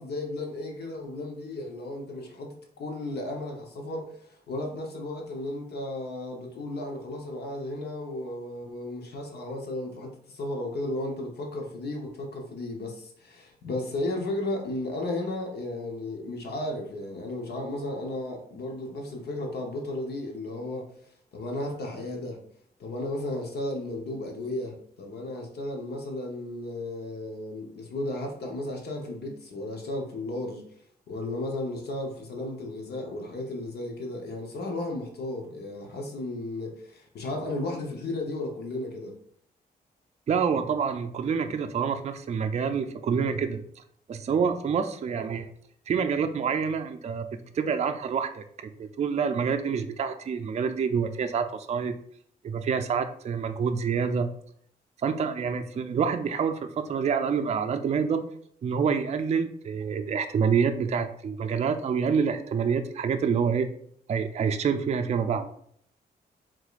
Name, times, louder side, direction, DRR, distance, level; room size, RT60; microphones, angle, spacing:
voice 1, 0.0-20.9 21.3-22.4 22.8-30.6 31.1-39.1, left 2 dB, 75° left, 1 dB, 0.9 m, -34 dB
voice 2, 40.3-43.8 44.1-45.5 45.9-47.3 47.5-52.0 52.4-54.3 55.0-58.2 58.6-63.7 64.1-65.5, right 6 dB, 40° right, 7 dB, 0.4 m, -27 dB
4.8 x 3.7 x 2.4 m, 0.64 s
cardioid pair, 95°, 17 cm